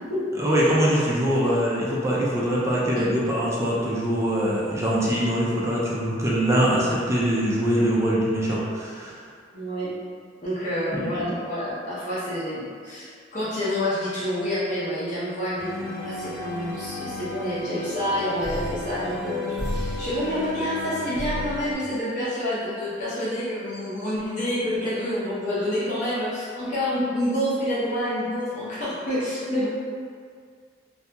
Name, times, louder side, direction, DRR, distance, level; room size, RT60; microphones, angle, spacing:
voice 1, 0.4-9.2 10.9-11.3, equal, 15° right, -6 dB, 0.4 m, -23 dB
voice 2, 9.5-9.9 10.4-29.7, equal, 40° left, -10 dB, 0.7 m, -28 dB
sound 1, 15.6-21.7, left 2 dB, 75° left, 0.9 m, -33 dB
2.7 x 2.6 x 2.2 m, 2.1 s
head